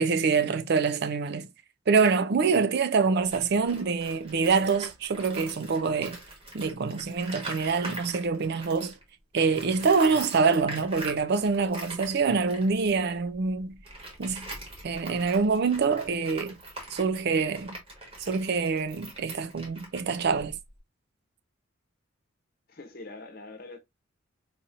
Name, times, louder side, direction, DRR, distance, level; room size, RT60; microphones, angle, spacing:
voice 1, 0.0-1.5 1.9-6.2 6.5-8.9 9.3-13.8 14.2-14.5 14.8-16.6 16.9-17.8 18.2-20.6, right 5 dB, 50° right, 0.4 m, -25 dB
Tools, 3.2-9.0 9.3-20.8, right 1 dB, 25° right, 1.3 m, -43 dB
voice 2, 22.7-23.8, left 2 dB, 45° left, 0.8 m, -43 dB
4.1 x 2.9 x 2.4 m
head